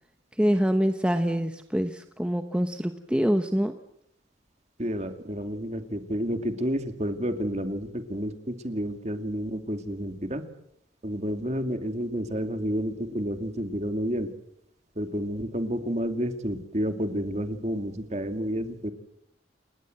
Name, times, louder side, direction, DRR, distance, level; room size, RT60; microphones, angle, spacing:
voice 1, 0.4-3.7, equal, 5° right, 7 dB, 1.0 m, -25 dB
voice 2, 4.8-10.4 11.0-14.3 15.0-18.9, equal, 35° right, 8 dB, 2.5 m, -30 dB
29.5 x 20.0 x 7.9 m, 0.75 s
head